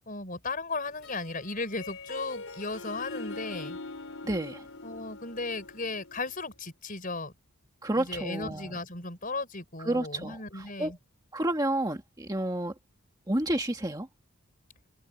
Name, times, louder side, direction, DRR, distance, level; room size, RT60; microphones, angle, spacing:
voice 1, 0.1-3.8 4.8-7.3 7.9-11.0, left 3 dB, 40° left, 5.6 m, -36 dB
Harp, 0.9-6.4, left 3 dB, 65° left, 4.6 m, -42 dB
voice 2, 4.2-4.7 7.8-8.8 9.8-10.9 11.3-12.7 13.3-14.1, right 1 dB, 15° right, 1.7 m, -30 dB
open air
head